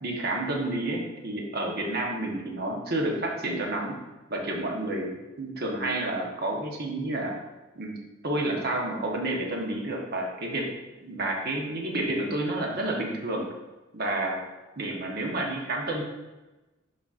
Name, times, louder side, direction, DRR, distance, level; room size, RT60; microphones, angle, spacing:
voice 1, 0.0-4.0 4.3-7.3 7.8-7.9 8.2-10.7 11.0-13.5 13.9-14.4 14.8-16.0, right 1 dB, 50° right, 0 dB, 1.1 m, -30 dB
11.0 x 4.2 x 2.5 m, 1.1 s
head